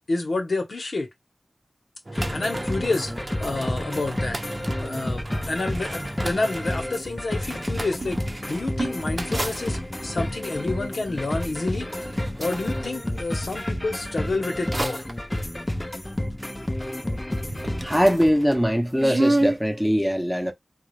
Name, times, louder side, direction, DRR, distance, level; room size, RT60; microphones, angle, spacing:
voice 1, 0.1-1.1 2.1-3.1 3.4-4.4 4.8-11.9 12.4-15.1, left 2 dB, 75° left, 1.1 m, -29 dB
sound 1, 2.1-13.7 14.2-17.1 17.4-19.6, right 2 dB, 40° right, 0.7 m, -33 dB
sound 2, 2.2-18.2, left 1 dB, 25° left, 0.7 m, -30 dB
voice 2, 17.8-20.5, equal, 5° left, 1.0 m, -21 dB
3.8 x 2.4 x 3.2 m
cardioid pair, 45°, 0 cm